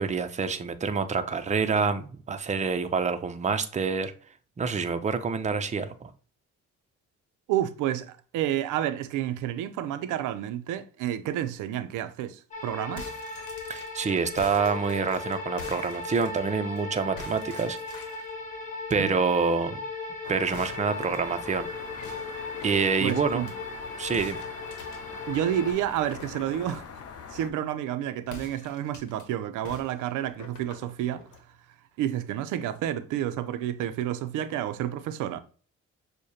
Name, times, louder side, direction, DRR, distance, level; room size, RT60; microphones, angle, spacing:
voice 1, 0.0-4.1 4.6-6.1 13.7-17.8 18.9-19.8 20.3-21.7 22.6-23.4 24.0-24.4, right 5 dB, 25° right, 0.5 m, -27 dB
voice 2, 7.5-13.1 19.0-19.1 23.0-23.5 25.3-26.8 27.3-31.2 32.0-35.4, right 11 dB, 90° right, 0.5 m, -30 dB
sound 1, 12.5-25.7, left 3 dB, 25° left, 1.3 m, -37 dB
sound 2, 12.8-16.8 17.2-18.3 20.5-23.6 24.1-27.0 28.2-29.3 29.6-31.5, left 4 dB, 75° left, 1.0 m, -46 dB
sound 3, 20.2-27.5, left 6 dB, 50° left, 0.6 m, -44 dB
6.4 x 2.2 x 2.7 m
cardioid pair, 90°, 30 cm